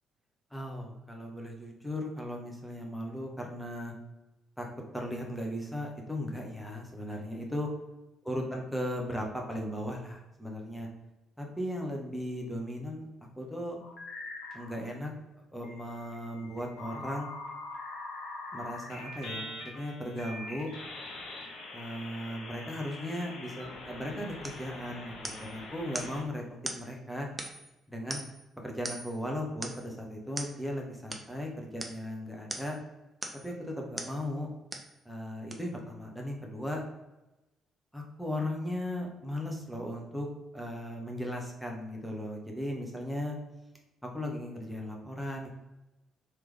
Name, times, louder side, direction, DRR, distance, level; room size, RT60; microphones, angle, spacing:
voice 1, 0.5-3.9 4.6-4.7 4.9-7.7 8.2-10.9 11.4-13.1 13.4-13.8 14.5-15.1 15.5-17.3 18.5-20.7 21.7-26.5 26.7-27.3 27.9-28.2 28.6-32.8 33.4-34.5 35.0-36.8 37.9-40.3 40.5-43.4 44.0-45.5, left 1 dB, ahead, 0 dB, 1.1 m, -37 dB
sound 1, 13.8-14.7 15.6-26.2, left 2 dB, 55° left, 0.9 m, -43 dB
sound 2, 24.4-24.7 25.2-25.5 25.9-26.2 26.6-26.9 27.4-27.7 28.1-28.4 28.8-29.2 29.6-29.9 30.4-30.6 31.1-31.3 31.8-32.0 32.5-32.8 33.2-33.5 34.0-34.2 34.7-34.9 35.5-35.6, right 1 dB, 15° right, 0.6 m, -39 dB
3.5 x 3.1 x 3.4 m, 0.99 s
figure-of-eight pair, 45°, 0 cm